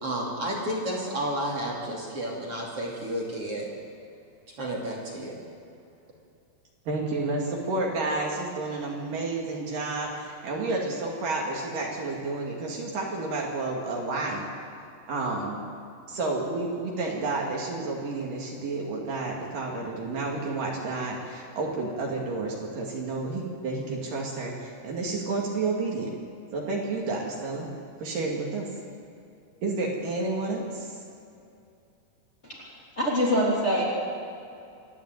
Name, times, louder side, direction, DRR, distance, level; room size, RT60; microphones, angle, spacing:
voice 1, 0.0-3.7 4.6-5.4, right 1 dB, 40° right, -3 dB, 3.2 m, -31 dB
voice 2, 6.9-14.5 15.1-15.6 16.1-26.1 26.5-27.7 28.0-28.7 29.6-30.9, right 3 dB, 60° right, -1 dB, 3.7 m, -30 dB
voice 3, 32.4-33.8, equal, 20° left, -5 dB, 3.0 m, -25 dB
26.5 x 11.0 x 9.3 m, 2.6 s
omnidirectional pair, 4.7 m